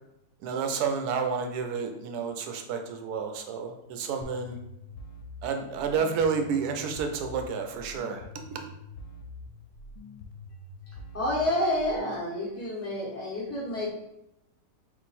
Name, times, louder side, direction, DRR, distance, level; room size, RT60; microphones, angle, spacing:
voice 1, 0.4-4.6 5.4-8.3 8.5-8.6, right 6 dB, 85° right, 5 dB, 1.1 m, -30 dB
sound 1, 4.2-12.2, left 2 dB, 85° left, 1.1 m, -45 dB
voice 2, 11.1-13.9, left 1 dB, 10° left, -6 dB, 0.8 m, -29 dB
3.8 x 2.5 x 4.1 m, 0.84 s
omnidirectional pair, 1.6 m